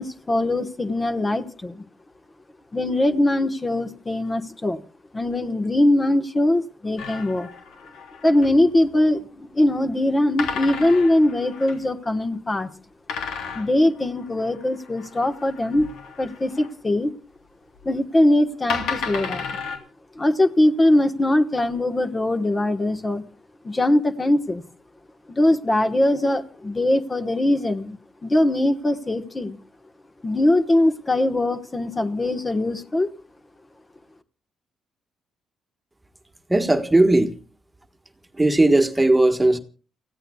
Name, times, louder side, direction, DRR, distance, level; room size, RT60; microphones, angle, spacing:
voice 1, 0.0-1.8 2.7-4.8 5.1-7.5 8.2-12.7 13.5-15.9 16.2-17.1 17.8-19.6 20.1-23.2 23.6-24.6 25.3-29.6 30.2-33.1, left 1 dB, 20° left, 1.3 m, -21 dB
sound 1, 7.0-8.7 10.4-11.8 13.1-16.7 17.8-17.9 18.7-19.8, left 5 dB, 85° left, 3.5 m, -33 dB
voice 2, 36.5-37.3 38.4-39.6, right 2 dB, 15° right, 1.5 m, -17 dB
29.5 x 15.5 x 2.3 m
cardioid pair, 90°, 0 cm